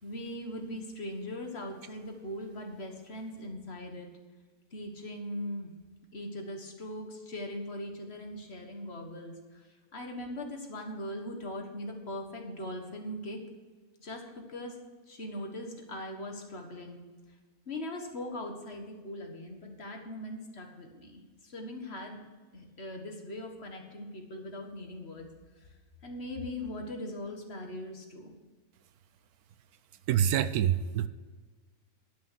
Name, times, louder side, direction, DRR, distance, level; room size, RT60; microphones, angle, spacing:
voice 1, 0.0-4.1 4.7-5.7 6.1-13.4 14.0-14.8 15.1-17.0 17.7-22.2 22.5-25.3 25.6-25.7 26.0-28.3, left 1 dB, 45° left, 3 dB, 1.7 m, -40 dB
voice 2, 30.1-31.1, right 10 dB, 80° right, 14 dB, 1.1 m, -26 dB
11.5 x 6.5 x 6.3 m, 1.4 s
omnidirectional pair, 1.6 m